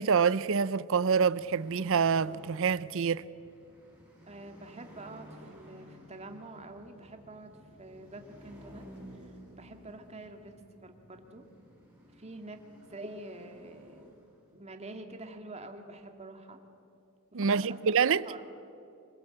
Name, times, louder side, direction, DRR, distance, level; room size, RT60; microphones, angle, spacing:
voice 1, 0.0-3.2 17.3-18.2, right 6 dB, 65° right, 0.6 m, -26 dB
sound 1, 1.3-14.7, equal, 5° right, 6.9 m, -54 dB
voice 2, 4.3-7.5 7.8-8.8 9.1-9.2 9.6-11.5 12.1-12.6 12.9-14.1 14.5-16.6 17.3-18.4, right 2 dB, 30° right, 2.0 m, -46 dB
25.5 x 21.5 x 8.7 m
head